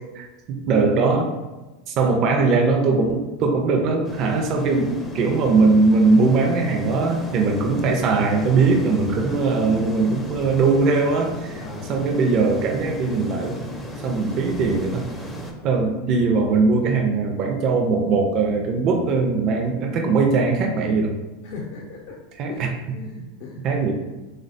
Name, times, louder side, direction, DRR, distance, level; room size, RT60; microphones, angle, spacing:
voice 1, 0.0-1.3 1.9-11.6 11.9-13.7 14.0-15.0 15.6-21.2 22.4-22.7 23.6-23.9, right 4 dB, 50° right, 2 dB, 0.4 m, -20 dB
sound 1, 4.0-15.5, equal, 15° left, 0.5 m, -35 dB
voice 2, 11.5-11.9 15.4-15.9 21.4-22.2 22.5-23.6, left 4 dB, 60° left, -2 dB, 0.6 m, -39 dB
3.3 x 2.1 x 2.5 m, 1.1 s
hypercardioid pair, 100°, 0 cm